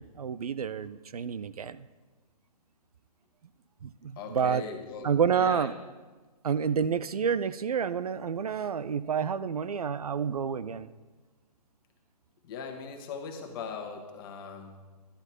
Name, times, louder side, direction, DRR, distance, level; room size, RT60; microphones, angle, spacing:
voice 1, 0.0-1.9 3.8-4.6 5.0-5.7 6.4-10.9, right 7 dB, 65° right, 15 dB, 0.5 m, -29 dB
voice 2, 4.2-5.1 5.4-5.7 12.4-14.8, left 5 dB, 35° left, 3 dB, 1.6 m, -39 dB
11.5 x 9.5 x 4.5 m, 1.3 s
figure-of-eight pair, 130°, 21 cm